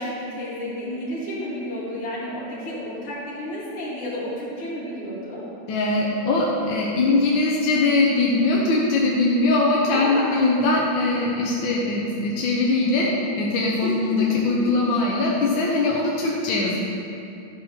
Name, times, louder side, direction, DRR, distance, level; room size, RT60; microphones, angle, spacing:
voice 1, 0.0-5.4 9.9-10.3 13.8-14.7, equal, 85° left, -7 dB, 3.4 m, -31 dB
voice 2, 5.7-16.8, left 2 dB, 70° left, -3 dB, 1.7 m, -21 dB
12.0 x 5.7 x 5.9 m, 2.6 s
omnidirectional pair, 2.3 m